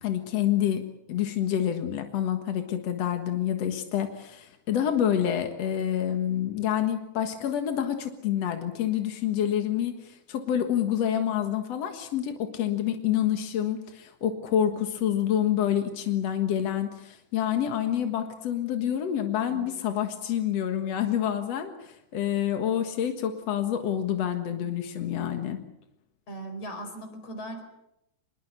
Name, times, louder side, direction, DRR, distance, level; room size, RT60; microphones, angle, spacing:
voice 1, 0.0-25.6, left 10 dB, 60° left, 6 dB, 1.8 m, -27 dB
voice 2, 26.3-27.6, right 1 dB, 35° left, 7 dB, 5.6 m, -38 dB
26.0 x 22.0 x 8.2 m, 0.85 s
omnidirectional pair, 5.1 m